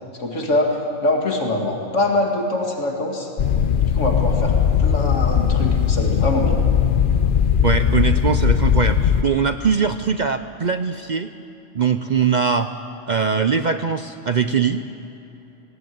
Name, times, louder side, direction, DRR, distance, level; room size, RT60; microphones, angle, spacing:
voice 1, 0.2-3.3 3.9-6.6, left 2 dB, 75° left, 1 dB, 2.6 m, -23 dB
sound 1, 3.4-9.2, left 8 dB, 50° left, 0.8 m, -18 dB
voice 2, 7.6-11.3 11.7-12.7 13.1-14.8, right 6 dB, 45° right, 10 dB, 0.6 m, -21 dB
19.0 x 18.0 x 9.4 m, 3.0 s
omnidirectional pair, 1.3 m